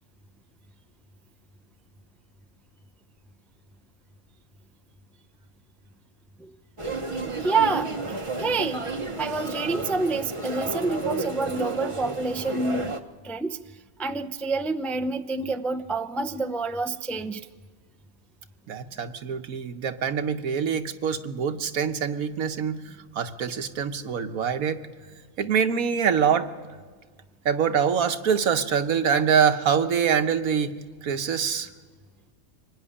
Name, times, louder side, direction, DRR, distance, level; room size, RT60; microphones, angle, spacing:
sound 1, 6.8-13.0, right 3 dB, 25° right, 0.9 m, -32 dB
voice 1, 7.4-8.9 9.2-12.9 13.2-13.6 14.0-17.4, right 3 dB, ahead, 9 dB, 0.3 m, -27 dB
voice 2, 18.7-22.8 23.1-24.8 25.4-26.5 27.4-30.8 31.0-31.7, right 7 dB, 85° right, 8 dB, 1.5 m, -24 dB
24.5 x 18.0 x 9.9 m, 1.4 s
omnidirectional pair, 1.4 m